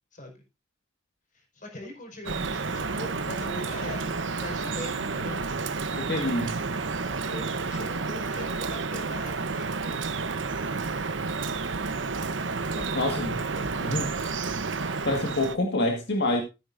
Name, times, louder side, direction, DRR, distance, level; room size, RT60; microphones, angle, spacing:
voice 1, 1.3-5.5 7.3-10.0 12.6-14.0, left 1 dB, 45° left, 3 dB, 5.1 m, -41 dB
Drip, 2.3-15.6, right 4 dB, 80° right, 1.0 m, -30 dB
voice 2, 6.0-6.6 12.9-13.3 13.8-14.3 14.8-16.4, left 1 dB, 60° left, 2 dB, 1.9 m, -27 dB
14.5 x 9.6 x 2.6 m, 0.26 s
head